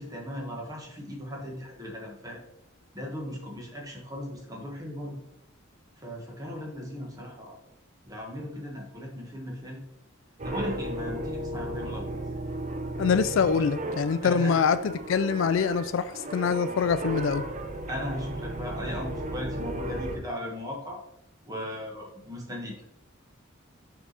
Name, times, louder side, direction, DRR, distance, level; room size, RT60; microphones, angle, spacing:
voice 1, 0.0-2.4 2.9-5.2 6.0-7.6 8.0-9.8 10.4-12.1 13.5-13.6 14.2-14.5 17.9-21.0 21.4-22.8, left 1 dB, 20° right, 1.5 m, -37 dB
sound 1, 10.4-20.2, right 1 dB, 35° right, 0.6 m, -35 dB
voice 2, 13.0-17.4, left 6 dB, 65° left, 0.4 m, -25 dB
5.9 x 4.9 x 4.1 m
head